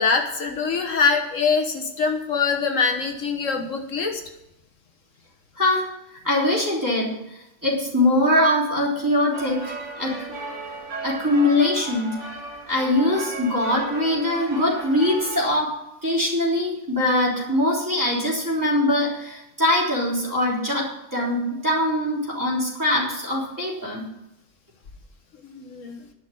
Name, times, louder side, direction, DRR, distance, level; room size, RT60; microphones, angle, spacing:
voice 1, 0.0-4.2 25.4-26.0, left 5 dB, 75° left, 4 dB, 1.7 m, -23 dB
voice 2, 5.6-5.9 6.2-10.2 11.0-12.2 12.7-15.8 16.0-24.0, left 1 dB, 15° right, -5 dB, 3.8 m, -22 dB
sound 1, 9.3-15.5, right 2 dB, 65° right, 2.0 m, -36 dB
11.0 x 6.6 x 9.3 m, 0.89 s
omnidirectional pair, 1.4 m